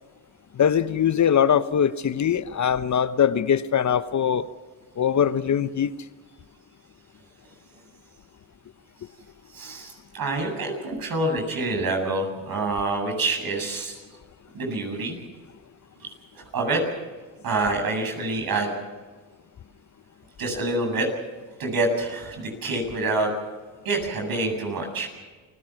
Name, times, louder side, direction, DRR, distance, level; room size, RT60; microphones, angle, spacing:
voice 1, 0.6-4.5 5.0-5.9, left 8 dB, 45° left, 1.0 m, -22 dB
voice 2, 9.5-14.0 14.5-15.2 16.3-16.8 17.4-18.7 20.4-21.1 21.6-23.3 23.8-25.1, right 2 dB, 60° right, 8.0 m, -26 dB
29.0 x 17.0 x 6.0 m
supercardioid pair, 65°, 40 cm